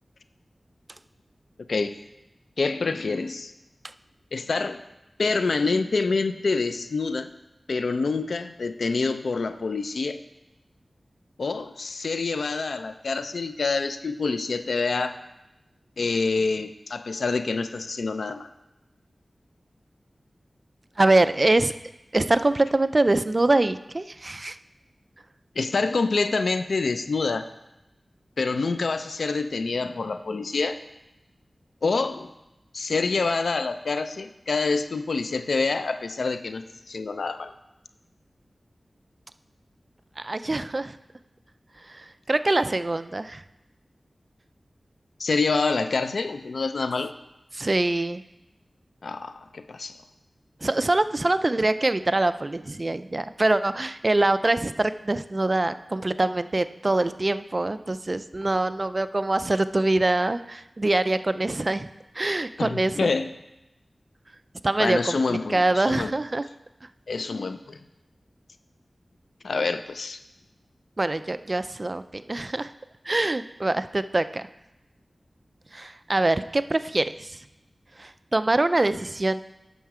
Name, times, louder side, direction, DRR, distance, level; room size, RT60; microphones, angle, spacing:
voice 1, 2.6-3.5 4.3-4.8 5.2-7.3 7.7-10.2 11.4-15.2 16.0-18.5 25.6-27.5 28.4-30.8 31.8-32.3 32.7-37.5 45.2-47.1 49.0-50.0 62.6-63.3 64.8-66.1 67.1-67.8 69.4-70.2, left 4 dB, 90° left, 10 dB, 0.4 m, -26 dB
voice 2, 21.0-21.7 22.1-24.6 40.2-40.9 41.9-43.4 47.5-48.2 50.6-61.9 62.2-63.1 64.6-66.5 71.0-72.7 73.1-74.4 75.7-77.4 78.0-79.4, right 2 dB, 40° right, 12 dB, 0.4 m, -24 dB
9.2 x 6.4 x 4.8 m, 0.93 s
wide cardioid pair, 80°, 0 cm